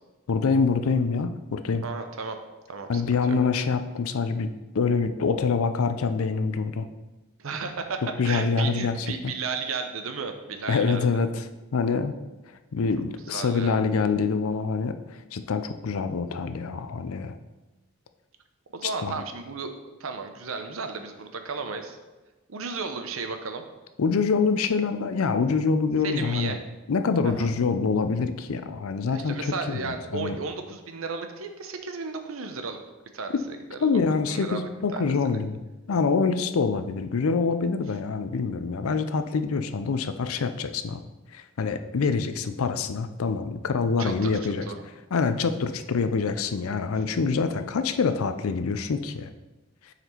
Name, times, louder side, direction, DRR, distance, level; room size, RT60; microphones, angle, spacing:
voice 1, 0.3-1.8 2.9-6.9 8.2-9.3 10.7-11.5 11.7-12.1 12.7-17.3 19.0-19.2 24.0-26.6 26.9-30.4 33.3-33.4 33.8-35.6 35.9-41.0 41.3-44.7 45.1-49.3, left 4 dB, 90° left, 10 dB, 0.5 m, -25 dB
voice 2, 1.8-2.4 2.7-3.0 7.4-11.1 13.3-13.8 18.7-19.7 20.0-22.0 22.5-23.6 26.0-26.6 27.2-27.5 29.1-32.8 33.1-33.4 33.7-33.9 34.3-35.4 44.0-44.8, right 4 dB, 80° right, 6 dB, 0.7 m, -34 dB
6.7 x 4.2 x 4.4 m, 1.1 s
head